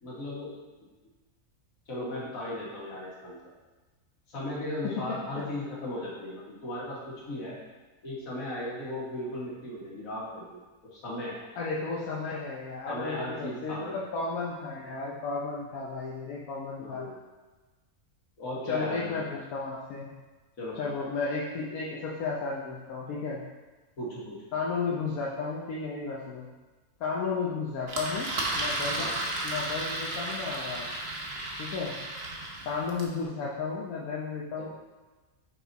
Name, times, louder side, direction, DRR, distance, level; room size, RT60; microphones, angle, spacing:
voice 1, 0.0-0.5 1.9-3.4 4.3-7.6 8.0-10.6 10.9-11.4 12.9-14.0 16.8-17.1 18.4-19.3 20.6-20.8 24.0-24.4 29.0-29.1 34.6-34.7, left 1 dB, 70° left, -6 dB, 2.1 m, -36 dB
voice 2, 11.6-17.1 18.6-20.1 20.8-23.4 24.5-26.5 27.0-29.1 29.4-30.9 31.6-31.9 32.6-34.7, left 4 dB, 85° left, -4 dB, 1.2 m, -33 dB
Engine, 27.9-33.2, right 2 dB, 50° right, 1.1 m, -33 dB
6.0 x 4.4 x 4.0 m, 1.2 s
omnidirectional pair, 1.5 m